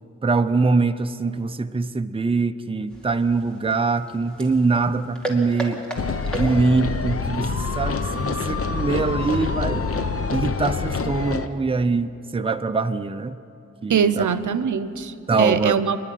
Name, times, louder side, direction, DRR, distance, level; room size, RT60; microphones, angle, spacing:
voice 1, 0.2-5.8 6.3-9.9 10.3-13.4 13.8-14.3 15.3-15.7, right 4 dB, 20° right, 8 dB, 0.6 m, -23 dB
sound 1, 2.9-7.0, right 2 dB, 5° left, 2.6 m, -35 dB
sound 2, 6.0-11.5, left 4 dB, 50° left, 0.9 m, -26 dB
voice 2, 13.9-16.0, right 7 dB, 80° right, 13 dB, 0.8 m, -22 dB
27.5 x 11.0 x 9.2 m, 2.8 s
wide cardioid pair, 125°, 30 cm